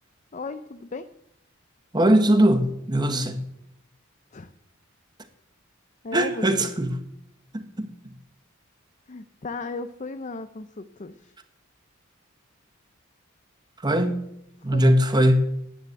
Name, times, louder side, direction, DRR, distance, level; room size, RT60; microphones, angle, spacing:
voice 1, 0.3-1.1 3.1-3.3 4.3-4.5 6.0-6.7 9.1-11.3 14.7-14.8, left 3 dB, 35° left, 0.6 m, -35 dB
voice 2, 1.9-3.4 6.1-6.9 7.5-8.1 13.8-14.2 14.6-15.5, right 1 dB, 20° right, 1.2 m, -21 dB
10.5 x 9.5 x 8.0 m
head